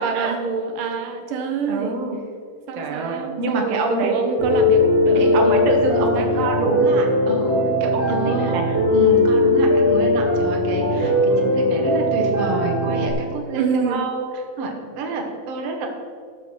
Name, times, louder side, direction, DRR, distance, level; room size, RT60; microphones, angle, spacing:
voice 1, 0.0-2.0 2.7-6.6 8.1-8.6 13.5-14.1, right 5 dB, 75° right, 5 dB, 2.6 m, -26 dB
voice 2, 1.7-2.2 2.8-4.2 5.2-14.3 14.6-15.9, right 3 dB, 55° right, 1 dB, 2.3 m, -27 dB
Piano, 4.4-13.1, left 1 dB, 40° right, 4.0 m, -19 dB
13.0 x 7.9 x 4.6 m, 2.2 s
omnidirectional pair, 3.9 m